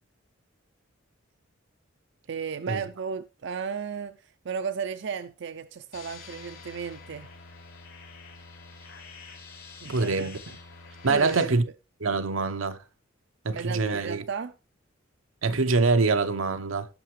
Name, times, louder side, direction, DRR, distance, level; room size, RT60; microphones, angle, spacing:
voice 1, 2.3-7.3 9.8-10.3 11.1-11.5 13.5-14.5, right 6 dB, 65° right, 0.5 m, -34 dB
sound 1, 5.9-11.4, left 4 dB, 80° left, 4.0 m, -46 dB
voice 2, 9.9-10.4 11.0-11.6 12.0-12.8 13.4-14.2 15.4-16.9, right 3 dB, 90° right, 0.9 m, -24 dB
17.0 x 5.7 x 3.2 m
head